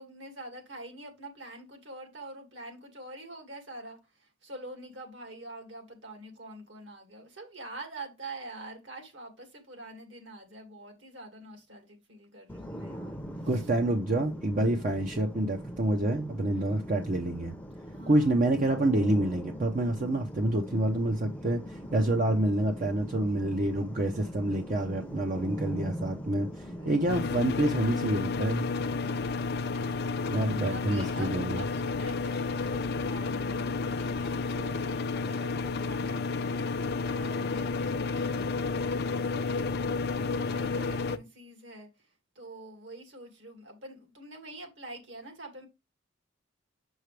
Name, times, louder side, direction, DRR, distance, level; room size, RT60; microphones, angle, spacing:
voice 1, 0.0-13.7 16.5-16.8 17.9-18.3 21.8-22.2 26.6-27.1 29.0-41.9 42.4-45.7, right 1 dB, 65° right, 2.3 m, -46 dB
sound 1, 12.5-27.5, equal, 5° left, 0.7 m, -41 dB
voice 2, 13.4-17.5 18.1-28.8 30.3-31.6, right 1 dB, 45° right, 0.7 m, -28 dB
sound 2, 27.1-41.2, left 4 dB, 55° left, 0.5 m, -31 dB
6.6 x 6.4 x 3.3 m
head